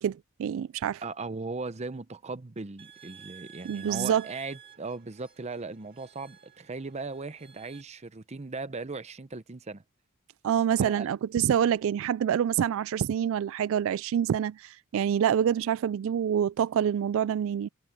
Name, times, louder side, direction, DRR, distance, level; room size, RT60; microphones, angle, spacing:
voice 1, 0.0-1.0 3.6-4.2 10.4-17.7, right 9 dB, 65° right, 0.3 m, -26 dB
voice 2, 1.0-9.8 10.8-11.1, right 3 dB, 30° right, 0.7 m, -38 dB
sound 1, 2.8-7.8, right 9 dB, 50° right, 2.9 m, -52 dB
head